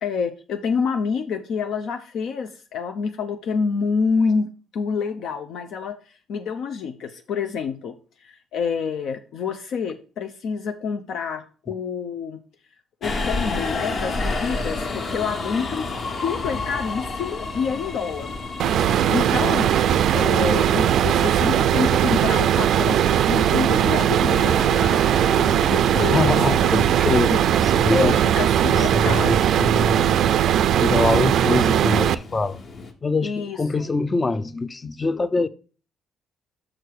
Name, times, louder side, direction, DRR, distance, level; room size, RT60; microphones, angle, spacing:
voice 1, 0.0-6.0 6.3-7.9 8.2-12.4 13.0-15.9 16.2-18.4 19.1-19.8 20.1-24.6 25.7-26.9 27.3-27.4 27.9-29.3 33.2-33.9, left 5 dB, 70° left, 0.6 m, -27 dB
Subway metro underground, 13.0-32.9, left 3 dB, 40° left, 1.2 m, -33 dB
sound 1, 18.6-32.1, right 10 dB, 65° right, 0.4 m, -19 dB
voice 2, 25.9-28.2 28.7-30.1 30.8-32.6 33.0-35.5, left 3 dB, 20° left, 0.4 m, -24 dB
6.5 x 6.0 x 4.7 m
cardioid pair, 130°, 0 cm